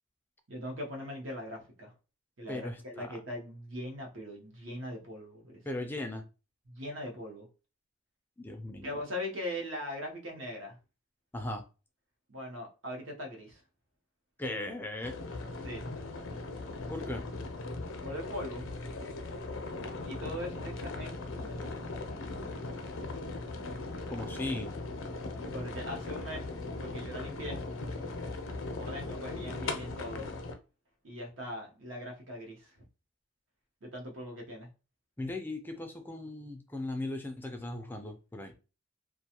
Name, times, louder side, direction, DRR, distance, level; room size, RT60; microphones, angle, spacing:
voice 1, 0.5-1.9 2.4-5.9 6.7-7.5 8.8-10.8 12.3-13.6 15.6-15.9 18.0-18.7 20.0-21.6 25.5-26.5 26.8-27.6 28.8-30.3 31.0-32.7 33.8-34.7, left 1 dB, 70° right, 0.8 m, -40 dB
voice 2, 2.5-3.1 5.7-6.2 8.4-9.0 11.3-11.6 14.4-15.1 16.9-17.2 24.1-24.7 35.2-38.5, left 2 dB, 10° left, 0.3 m, -37 dB
sound 1, 15.0-30.5, left 2 dB, 80° left, 0.5 m, -39 dB
2.4 x 2.2 x 2.8 m
head